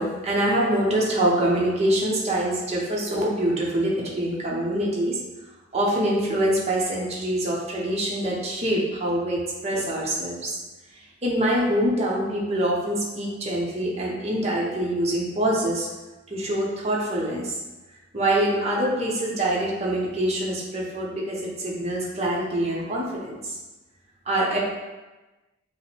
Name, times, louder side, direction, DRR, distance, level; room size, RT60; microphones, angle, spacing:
voice 1, 0.0-5.2 5.7-10.5 11.2-15.9 16.3-17.6 18.1-23.6 24.3-24.6, right 1 dB, 35° right, -4 dB, 0.8 m, -25 dB
5.4 x 2.1 x 3.2 m, 1.1 s
head